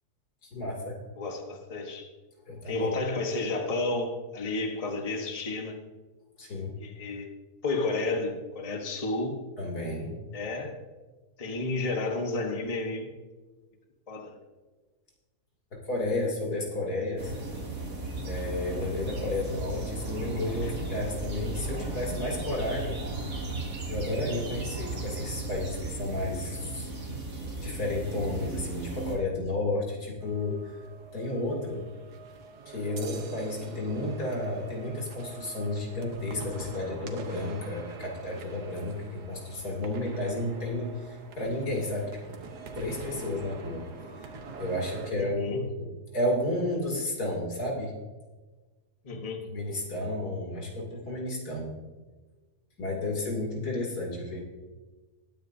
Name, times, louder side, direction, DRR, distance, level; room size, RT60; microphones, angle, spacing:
voice 1, 0.4-1.0 2.5-2.9 6.4-6.7 9.6-10.2 15.8-17.3 18.3-23.0 23.9-26.9 27.6-30.8 31.1-31.9 32.7-42.4 42.7-43.9 44.2-44.3 44.6-47.9 49.5-51.7 52.8-54.4, left 1 dB, 75° left, -2 dB, 3.4 m, -32 dB
voice 2, 1.2-2.1 2.7-5.8 6.8-7.3 7.6-9.4 10.3-10.8 11.4-13.1 14.1-14.4 20.6-20.7 45.2-45.7 49.0-49.4, left 2 dB, 25° left, 3 dB, 1.2 m, -31 dB
sound 1, 17.2-29.2, right 2 dB, 70° right, 2.9 m, -35 dB
sound 2, 30.2-45.1, right 4 dB, 90° right, 1.7 m, -45 dB
20.0 x 9.3 x 2.7 m, 1.3 s
omnidirectional pair, 1.7 m